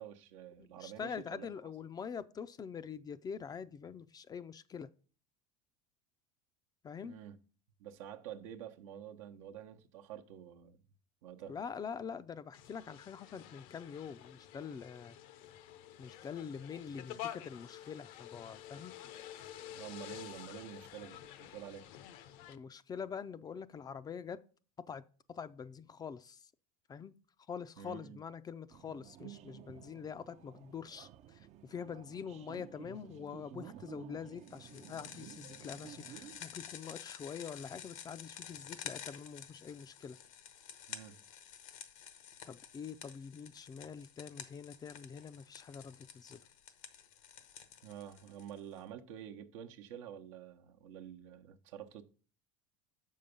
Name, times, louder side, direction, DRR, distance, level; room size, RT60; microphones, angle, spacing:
voice 1, 0.0-1.5 7.0-7.4 7.8-10.8 11.2-11.6 19.7-21.9 27.8-28.2 40.9-41.2 47.8-52.0, right 9 dB, 75° right, 0.9 m, -48 dB
voice 2, 0.8-4.9 6.8-7.2 11.5-15.2 16.0-18.9 22.5-24.4 24.9-25.0 25.3-26.4 26.9-27.1 27.5-40.2 42.5-46.4, left 6 dB, 25° left, 0.4 m, -45 dB
sound 1, 12.5-22.6, left 11 dB, 60° left, 0.7 m, -49 dB
sound 2, 28.7-36.4, right 11 dB, 40° right, 0.5 m, -53 dB
sound 3, 34.5-48.8, left 9 dB, 80° left, 1.0 m, -51 dB
6.8 x 5.6 x 5.2 m
supercardioid pair, 110°, 17 cm